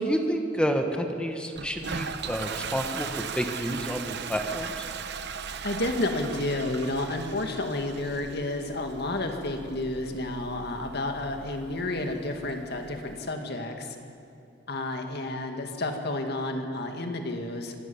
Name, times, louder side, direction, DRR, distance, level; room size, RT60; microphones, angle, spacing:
voice 1, 0.0-4.9, equal, 5° left, 4 dB, 1.3 m, -29 dB
Toilet flush, 1.6-13.1, right 6 dB, 60° right, 0.9 m, -39 dB
voice 2, 5.6-14.0 14.7-17.7, left 2 dB, 60° left, 4 dB, 2.1 m, -31 dB
24.5 x 12.5 x 8.9 m, 2.5 s
head